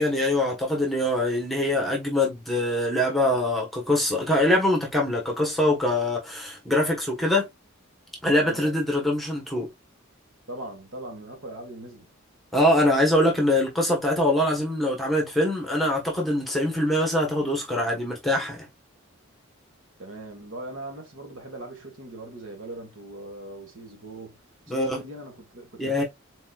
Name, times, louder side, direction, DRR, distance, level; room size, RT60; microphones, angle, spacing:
voice 1, 0.0-7.5 8.2-9.7 12.5-18.7 24.7-25.0 25.8-26.0, left 1 dB, ahead, 1.2 m, -23 dB
voice 2, 10.5-12.1 20.0-24.4 24.7-26.0, right 1 dB, 75° right, 1.6 m, -40 dB
4.1 x 4.1 x 2.4 m
head